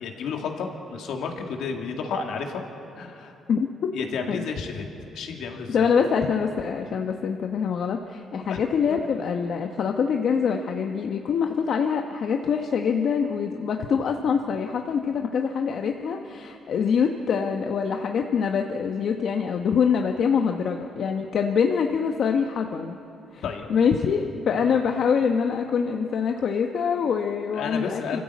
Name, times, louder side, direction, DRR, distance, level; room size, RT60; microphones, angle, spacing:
voice 1, 0.0-2.6 3.0-3.4 3.9-4.9 5.1-5.9 8.5-8.6 23.4-23.7 27.5-28.2, left 5 dB, 80° left, 2 dB, 2.3 m, -31 dB
voice 2, 5.7-23.0 23.3-23.4 23.7-28.2, left 6 dB, 65° left, 4 dB, 1.0 m, -24 dB
26.0 x 14.5 x 8.4 m, 2.8 s
cardioid pair, 90°, 0 cm